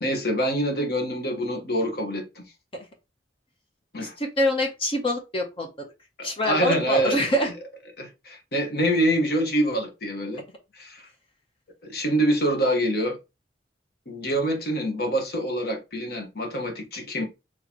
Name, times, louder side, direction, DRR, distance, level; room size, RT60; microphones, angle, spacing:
voice 1, 0.0-2.4 3.9-4.1 6.2-7.2 8.0-10.4 10.8-11.1 11.9-13.2 14.1-17.2, right 1 dB, 60° left, 1.2 m, -25 dB
voice 2, 4.0-5.7 6.2-7.5, equal, 30° left, 0.8 m, -25 dB
4.3 x 3.1 x 2.9 m
head